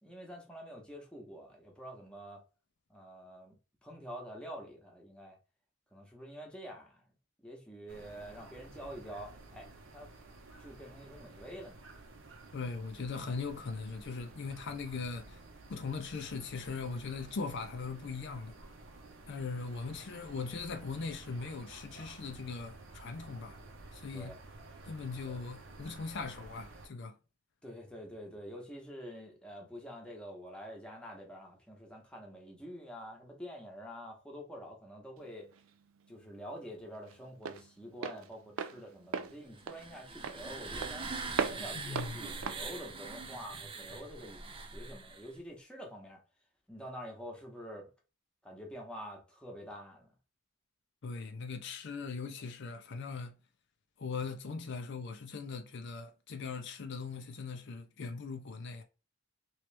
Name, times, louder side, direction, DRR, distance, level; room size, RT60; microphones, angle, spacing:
voice 1, 0.0-2.4 2.9-3.5 3.8-5.4 5.9-7.1 7.4-10.1 10.6-11.8 24.1-24.4 25.2-25.4 27.6-35.5 36.1-41.1 41.5-46.2 46.7-47.9 48.4-50.1, equal, 5° left, 1.0 m, -47 dB
sound 1, 7.9-26.9, right 2 dB, 70° right, 0.8 m, -53 dB
voice 2, 12.5-15.4 15.7-18.5 19.3-23.6 23.9-24.4 24.8-27.1 41.7-42.1 51.0-53.4 54.0-58.8, left 4 dB, 60° left, 0.5 m, -40 dB
Walk footsteps, 35.2-43.9, right 6 dB, 85° right, 0.4 m, -40 dB
sound 2, 39.5-45.4, right 4 dB, 25° right, 0.5 m, -43 dB
3.1 x 3.0 x 3.3 m
head